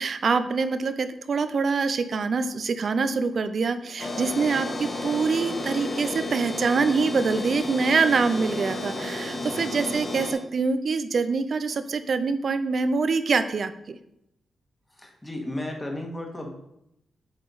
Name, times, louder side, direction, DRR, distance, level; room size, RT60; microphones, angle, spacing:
voice 1, 0.0-14.0, right 4 dB, 60° right, 11 dB, 0.5 m, -25 dB
sound 1, 4.0-10.3, left 2 dB, 55° left, 2.3 m, -32 dB
voice 2, 14.9-16.5, left 1 dB, 15° left, 2 dB, 1.7 m, -34 dB
8.7 x 3.6 x 4.1 m, 0.81 s
cardioid pair, 60°, 0 cm